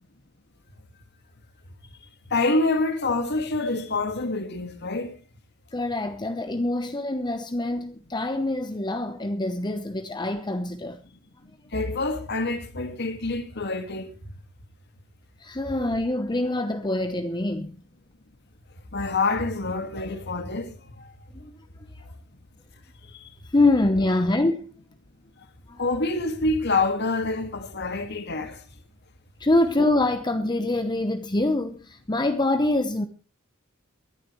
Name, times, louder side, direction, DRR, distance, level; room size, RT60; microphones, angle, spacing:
voice 1, 2.3-5.2 11.7-14.1 18.9-21.1 23.1-23.3 25.8-28.6, left 3 dB, 55° left, 2.0 m, -27 dB
voice 2, 5.7-11.0 15.4-17.8 21.3-21.5 21.8-22.0 23.5-24.7 25.7-26.0 29.4-33.1, left 2 dB, 20° left, 0.9 m, -25 dB
23.0 x 11.5 x 3.2 m
head